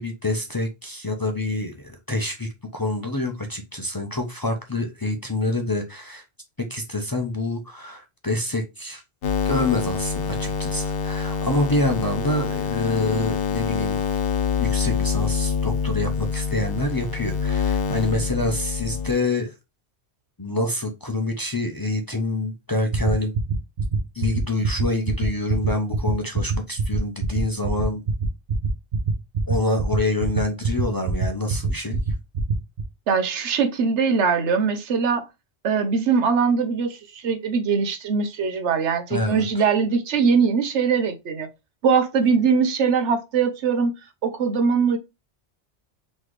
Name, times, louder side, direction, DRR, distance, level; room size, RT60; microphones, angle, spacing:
voice 1, 0.0-6.2 6.7-9.0 9.5-14.0 14.6-19.5 20.4-23.3 24.1-28.0 29.5-32.0 39.1-39.6, left 2 dB, 25° left, 0.6 m, -26 dB
sound 1, 9.2-19.1, left 6 dB, 60° left, 0.9 m, -26 dB
sound 2, 22.9-32.8, right 5 dB, 55° right, 1.0 m, -23 dB
voice 2, 33.1-35.3 35.6-41.5 41.8-43.9 44.2-45.0, right 5 dB, 90° right, 1.1 m, -21 dB
4.0 x 3.1 x 3.1 m
omnidirectional pair, 1.1 m